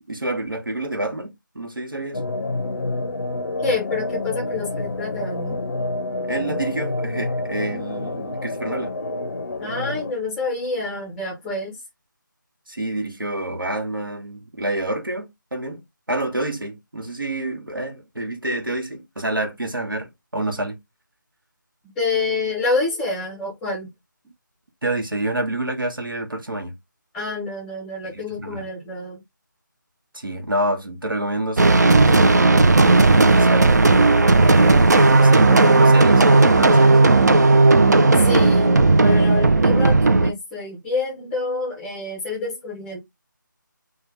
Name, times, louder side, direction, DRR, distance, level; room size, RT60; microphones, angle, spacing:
voice 1, 0.1-2.2 6.2-8.9 12.7-20.8 24.8-26.7 28.0-28.7 30.1-33.7 34.4-37.0, right 1 dB, 85° right, 1.2 m, -28 dB
sound 1, 2.1-10.1, left 2 dB, 65° left, 0.6 m, -28 dB
voice 2, 3.6-5.6 9.6-11.8 22.0-23.9 27.1-29.2 38.2-43.0, left 3 dB, 5° left, 0.6 m, -27 dB
sound 2, 31.6-40.3, right 3 dB, 55° right, 0.4 m, -14 dB
3.3 x 2.2 x 3.2 m
figure-of-eight pair, 160°, 11 cm